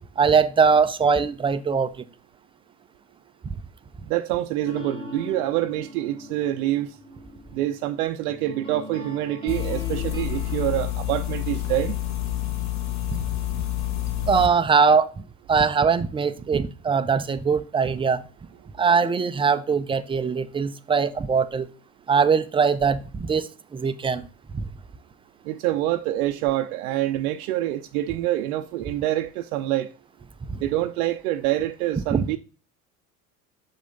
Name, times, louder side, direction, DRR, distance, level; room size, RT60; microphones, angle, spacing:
voice 1, 0.2-1.9 13.1-13.2 14.2-15.1 15.5-18.2 18.8-21.7 22.1-24.2 24.5-24.7 32.1-32.2, right 5 dB, 15° right, 0.4 m, -21 dB
voice 2, 4.1-7.0 7.5-12.0 25.4-29.9 30.5-32.4, right 14 dB, 70° right, 0.6 m, -26 dB
sound 1, 4.7-10.7, left 2 dB, 10° left, 2.0 m, -40 dB
sound 2, 9.5-14.5, left 13 dB, 35° left, 1.1 m, -28 dB
6.5 x 5.2 x 3.7 m
hypercardioid pair, 70°, 45 cm